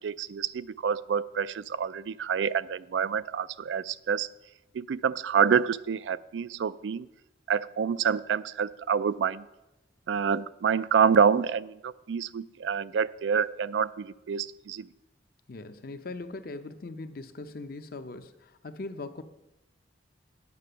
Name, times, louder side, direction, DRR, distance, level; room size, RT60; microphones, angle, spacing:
voice 1, 0.0-4.3 4.7-7.1 7.5-9.5 10.1-14.9, right 7 dB, 90° right, 16 dB, 0.4 m, -27 dB
voice 2, 15.5-19.2, left 3 dB, 55° left, 10 dB, 0.6 m, -40 dB
9.5 x 6.0 x 6.7 m, 0.93 s
head